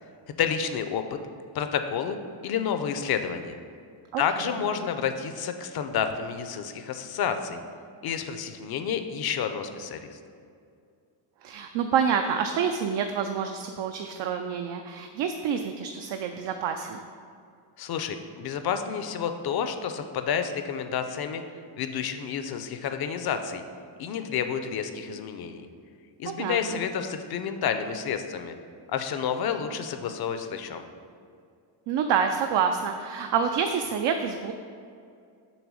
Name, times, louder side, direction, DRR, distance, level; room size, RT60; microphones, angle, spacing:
voice 1, 0.4-1.2 1.5-3.6 4.2-7.6 8.0-10.2 17.8-21.4 21.8-23.6 24.0-25.7 26.2-28.5 28.9-30.9, left 7 dB, 50° left, 8 dB, 0.6 m, -30 dB
voice 2, 11.4-17.0 26.2-26.8 31.9-34.5, right 7 dB, 65° right, 5 dB, 0.5 m, -27 dB
7.1 x 3.4 x 6.2 m, 2.3 s
cardioid pair, 135°, 48 cm